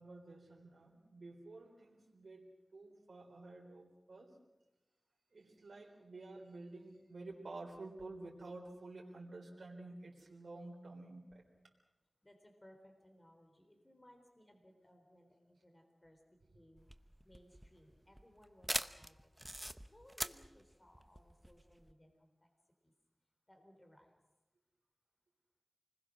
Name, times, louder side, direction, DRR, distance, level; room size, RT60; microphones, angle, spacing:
voice 1, 0.0-4.3 5.3-11.4, right 2 dB, 85° right, -1 dB, 3.7 m, -51 dB
voice 2, 12.2-16.9 17.2-22.5 22.8-22.9 23.5-24.2, equal, 25° left, 4 dB, 3.8 m, -64 dB
sound 1, 16.8-21.9, right 1 dB, 10° right, 0.9 m, -43 dB
28.5 x 20.5 x 6.2 m, 0.97 s
wide cardioid pair, 65°, 0 cm